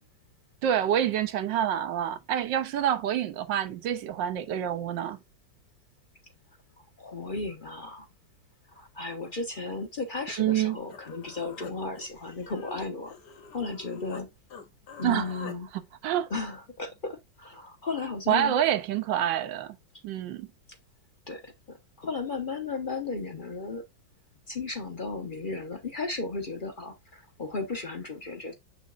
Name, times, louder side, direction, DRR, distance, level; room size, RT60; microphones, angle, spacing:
voice 1, 0.6-5.2 10.4-10.8 15.0-16.3 18.3-19.8 20.0-20.5, right 10 dB, 75° right, 1.4 m, -27 dB
voice 2, 7.0-8.1 8.7-13.1 13.5-14.3 15.0-15.7 16.3-18.5 21.3-23.8 24.5-28.5, left 3 dB, 40° left, 0.8 m, -35 dB
Human voice, 10.9-14.3 14.5-15.6, left 6 dB, 65° left, 1.5 m, -45 dB
6.3 x 6.2 x 2.4 m
omnidirectional pair, 2.0 m